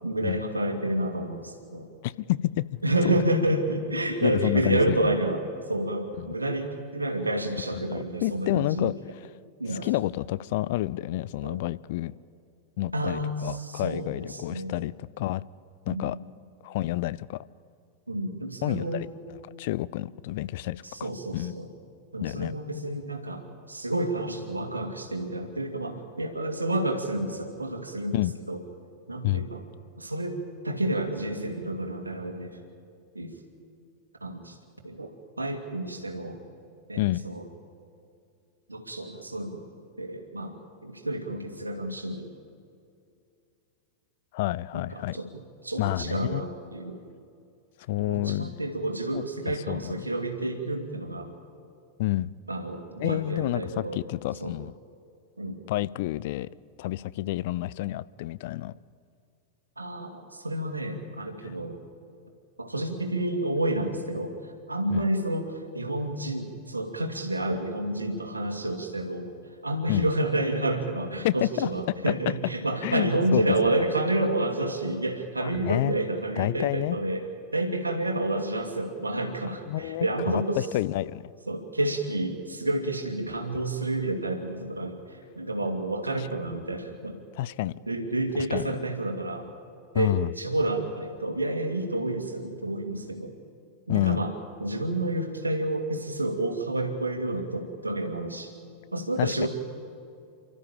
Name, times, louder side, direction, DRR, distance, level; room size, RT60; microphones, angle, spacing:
voice 1, 0.0-1.9 2.8-5.4 5.7-8.9 9.6-9.9 11.4-11.6 12.9-14.7 15.9-16.2 18.1-19.1 20.8-21.7 22.1-28.2 28.5-28.6 29.1-29.6 30.0-32.6 33.1-33.4 34.2-34.6 34.8-36.4 36.9-37.4 38.7-39.7 40.0-40.6 40.8-42.3 44.7-47.0 48.0-51.3 52.5-54.0 54.4-54.5 55.4-55.6 59.8-61.8 62.6-64.4 64.7-69.3 69.6-77.2 77.5-80.6 81.5-87.2 87.9-89.5 89.9-93.3 93.9-94.3 94.6-98.5 98.9-99.5, right 1 dB, 80° right, 2.5 m, -29 dB
voice 2, 2.0-3.1 4.2-5.0 6.2-6.4 7.9-8.9 9.8-12.1 12.8-15.4 15.9-16.2 16.6-17.4 18.6-19.1 19.6-21.5 22.2-22.5 28.1-28.3 29.2-29.5 37.0-37.2 44.3-45.2 45.8-46.5 47.9-48.6 49.1-49.2 49.7-50.1 52.0-52.3 53.0-54.7 55.7-56.5 56.8-58.7 64.9-65.0 69.9-70.1 71.2-71.7 72.8-73.4 75.4-75.9 76.4-77.0 79.7-81.3 86.2-86.3 87.4-87.7 88.5-88.7 89.9-90.3 93.9-94.2 99.2-99.5, left 16 dB, 50° left, 0.5 m, -29 dB
29.0 x 13.5 x 8.9 m
figure-of-eight pair, 90°, 0 cm